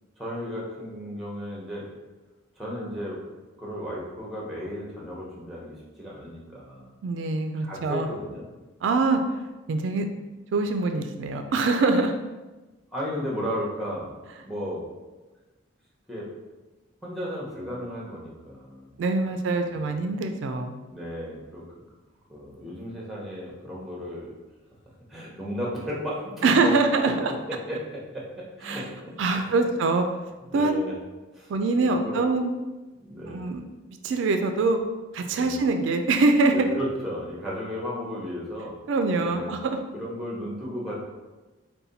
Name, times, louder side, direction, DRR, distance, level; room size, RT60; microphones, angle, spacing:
voice 1, 0.2-1.9 2.6-3.2 3.6-6.9 7.6-8.4 12.9-14.1 14.4-14.9 16.1-16.3 17.0-18.9 19.2-20.0 20.9-21.8 22.3-24.3 25.1-26.8 27.5-29.7 30.5-30.9 31.3-31.5 31.8-32.3 33.0-33.5 35.2-35.6 36.5-38.8 39.2-39.5 39.9-41.0, equal, ahead, -5 dB, 0.8 m, -34 dB
voice 2, 7.0-8.1 8.8-9.2 9.7-10.1 10.5-12.1 19.0-20.8 26.4-27.3 28.7-28.8 29.2-30.0 30.5-30.8 31.5-32.5 33.3-33.6 34.0-34.8 35.1-36.5 38.9-39.8, right 3 dB, 70° right, 6 dB, 0.3 m, -24 dB
4.1 x 2.2 x 4.0 m, 1.2 s
head